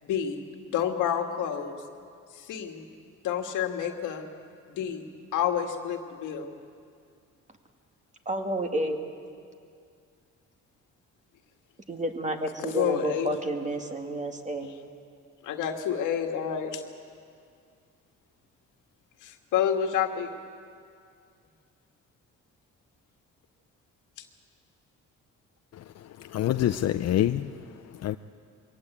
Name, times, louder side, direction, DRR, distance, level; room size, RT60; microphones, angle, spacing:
voice 1, 0.0-0.4 0.7-1.8 2.4-2.8 3.2-4.3 4.7-5.0 5.3-6.5 12.6-13.3 15.4-16.8 19.2-20.3, left 9 dB, 90° left, 1.9 m, -29 dB
voice 2, 8.3-9.0 11.9-14.8, right 1 dB, 25° right, 2.2 m, -30 dB
voice 3, 25.7-27.5 28.0-28.2, left 12 dB, 60° left, 0.6 m, -27 dB
22.5 x 18.0 x 8.4 m
cardioid pair, 90°, 30 cm